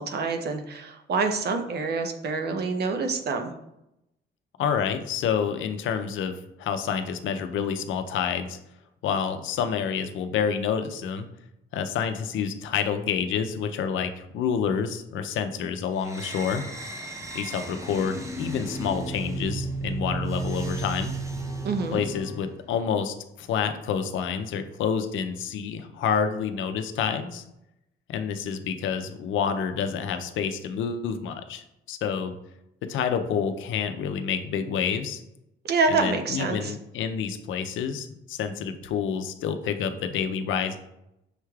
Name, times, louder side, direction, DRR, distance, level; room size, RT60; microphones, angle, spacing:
voice 1, 0.0-3.5 21.6-22.0 35.6-36.7, right 4 dB, 55° right, 6 dB, 0.6 m, -27 dB
voice 2, 4.6-8.6 9.0-11.3 11.7-16.6 17.3-21.1 21.9-27.4 28.1-32.3 32.8-35.2 35.9-40.8, left 7 dB, 75° left, 8 dB, 0.5 m, -28 dB
sound 1, 16.0-22.6, right 2 dB, 15° right, 0.6 m, -33 dB
6.4 x 3.2 x 2.3 m, 0.84 s
cardioid pair, 90°, 20 cm